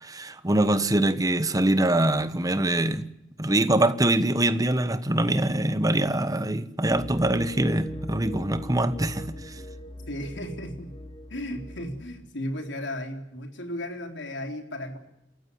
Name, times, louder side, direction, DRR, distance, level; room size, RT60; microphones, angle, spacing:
voice 1, 0.0-3.0 3.4-9.4, right 1 dB, 20° right, 1.3 m, -24 dB
sound 1, 6.9-12.2, left 1 dB, 30° left, 2.6 m, -40 dB
voice 2, 10.1-10.9 11.3-15.0, left 1 dB, 80° left, 3.9 m, -35 dB
27.5 x 14.5 x 9.9 m
head